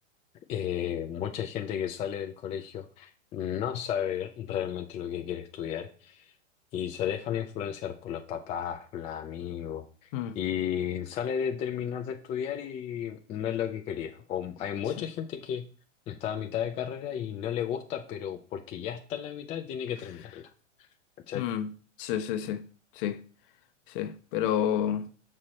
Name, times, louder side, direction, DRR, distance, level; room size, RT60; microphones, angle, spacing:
voice 1, 0.5-6.3 6.7-10.1 10.3-15.7 16.1-20.5 21.3-21.5, left 9 dB, 15° left, 0.4 m, -33 dB
voice 2, 21.3-21.7 22.0-22.6 23.0-23.2 23.9-25.1, left 10 dB, 45° left, 0.9 m, -29 dB
6.0 x 4.3 x 6.3 m
hypercardioid pair, 125°, 38 cm